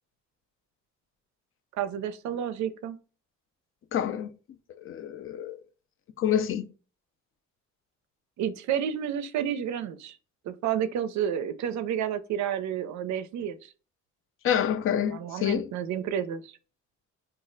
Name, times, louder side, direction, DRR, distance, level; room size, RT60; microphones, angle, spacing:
voice 1, 1.8-3.0 8.4-10.2 10.5-13.6 15.1-16.5, right 9 dB, 70° right, 0.5 m, -30 dB
voice 2, 3.9-4.3 4.8-5.6 6.2-6.7 14.4-15.7, left 9 dB, 45° left, 0.4 m, -27 dB
2.4 x 2.1 x 3.7 m
cardioid pair, 90°, 30 cm